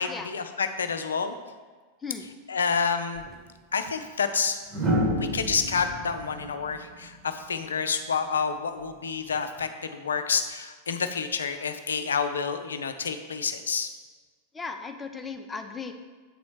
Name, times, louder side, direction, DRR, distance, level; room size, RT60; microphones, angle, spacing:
voice 1, 0.0-1.3 2.5-3.3 3.7-4.6 5.1-13.9, left 5 dB, 70° left, 8 dB, 0.5 m, -29 dB
sound 1, 3.1-3.3 4.7-7.8 9.3-9.6, equal, 25° right, 1.5 m, -30 dB
voice 2, 14.5-15.9, left 5 dB, 15° left, 6 dB, 0.6 m, -36 dB
7.9 x 4.1 x 4.8 m, 1.4 s
figure-of-eight pair, 90°, 0 cm